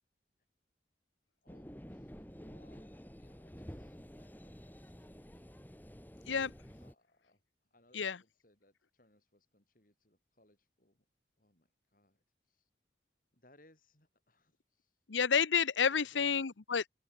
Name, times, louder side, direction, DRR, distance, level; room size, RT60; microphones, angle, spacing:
voice 1, 1.4-5.6 6.8-11.1 11.4-12.7 13.3-15.1 15.9-16.4, left 1 dB, 50° left, 6.3 m, -69 dB
sound 1, 1.5-6.9, equal, 10° left, 3.3 m, -51 dB
voice 2, 15.1-16.9, left 6 dB, 85° left, 0.8 m, -30 dB
open air
head